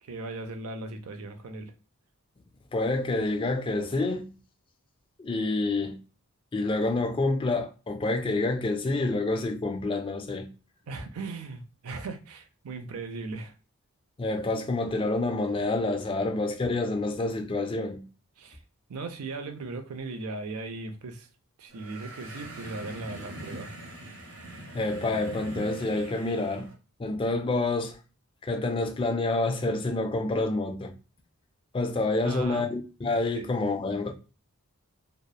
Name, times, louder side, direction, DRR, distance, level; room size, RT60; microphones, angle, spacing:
voice 1, 0.0-1.7 10.9-13.5 18.4-18.6 18.9-21.3 21.6-23.7 32.2-32.7 33.3-33.5, right 3 dB, 80° right, 0.5 m, -38 dB
voice 2, 2.7-4.3 5.2-6.0 6.5-10.5 14.2-18.1 24.7-26.7 27.0-28.0 28.4-30.9 31.7-34.1, left 2 dB, 25° left, 0.3 m, -28 dB
sound 1, 21.7-26.7, right 1 dB, 60° right, 0.9 m, -43 dB
2.8 x 2.0 x 2.2 m
head